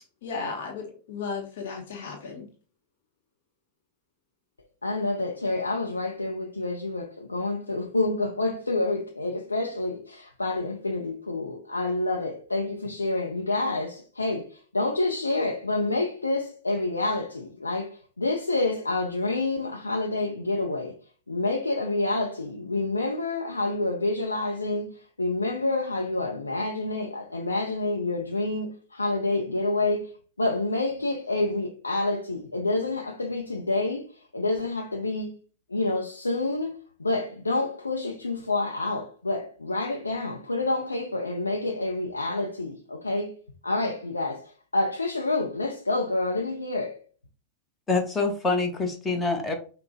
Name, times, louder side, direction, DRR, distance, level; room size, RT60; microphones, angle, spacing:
voice 1, 0.2-2.5, left 5 dB, 55° left, 0.9 m, -35 dB
voice 2, 4.8-21.0 21.3-30.1 30.4-35.3 35.7-43.4 43.6-47.0, left 2 dB, 80° left, 0.6 m, -28 dB
voice 3, 47.9-49.5, left 3 dB, 15° left, 1.0 m, -25 dB
5.5 x 2.2 x 3.9 m
figure-of-eight pair, 90°, 0 cm